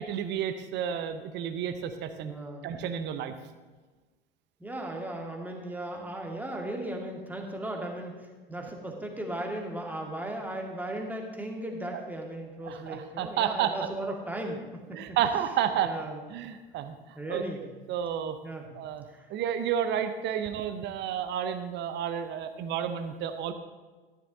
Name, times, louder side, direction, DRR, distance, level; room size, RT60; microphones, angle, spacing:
voice 1, 0.0-2.3 2.6-3.3 11.9-12.0 12.6-13.7 14.9-15.9 16.3-18.4 18.7-19.0 19.3-23.5, right 9 dB, 35° right, 9 dB, 0.8 m, -31 dB
voice 2, 2.2-2.7 4.6-8.1 8.5-15.2 15.8-16.2 17.2-17.6 18.4-18.7 19.1-19.3, right 1 dB, 5° right, 1 dB, 1.8 m, -36 dB
13.5 x 11.0 x 2.7 m, 1.3 s
figure-of-eight pair, 75°, 30 cm